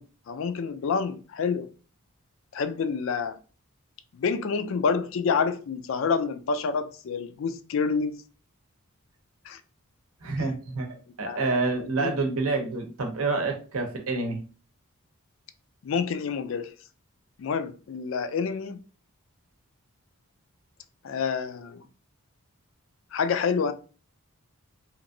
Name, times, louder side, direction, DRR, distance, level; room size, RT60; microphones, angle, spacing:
voice 1, 0.0-1.7 2.5-3.4 4.1-8.2 9.4-9.6 10.4-10.5 11.2-12.1 15.8-16.7 17.4-18.8 21.0-21.8 23.1-23.7, left 5 dB, 60° left, 0.3 m, -28 dB
voice 2, 10.2-14.4, right 3 dB, 70° right, 0.7 m, -28 dB
2.9 x 2.5 x 2.6 m
head